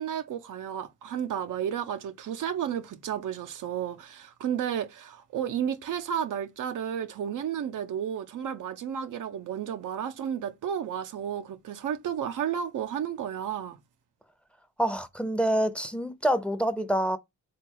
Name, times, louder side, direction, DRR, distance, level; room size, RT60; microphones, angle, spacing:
voice 1, 0.0-13.8, right 9 dB, 85° right, 0.6 m, -32 dB
voice 2, 14.8-17.2, right 1 dB, 5° left, 0.6 m, -26 dB
3.9 x 2.3 x 4.5 m
cardioid pair, 70°, 30 cm